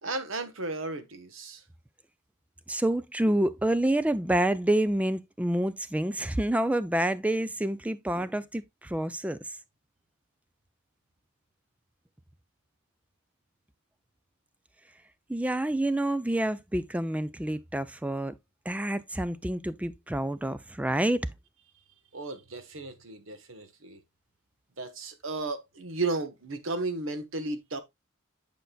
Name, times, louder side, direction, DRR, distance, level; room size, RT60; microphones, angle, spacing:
voice 1, 0.0-1.6 22.1-24.0 24.8-27.8, right 3 dB, 65° right, 1.1 m, -34 dB
voice 2, 2.7-9.4 15.3-18.3 18.7-21.2, right 1 dB, 5° right, 0.3 m, -28 dB
9.1 x 5.2 x 2.3 m
head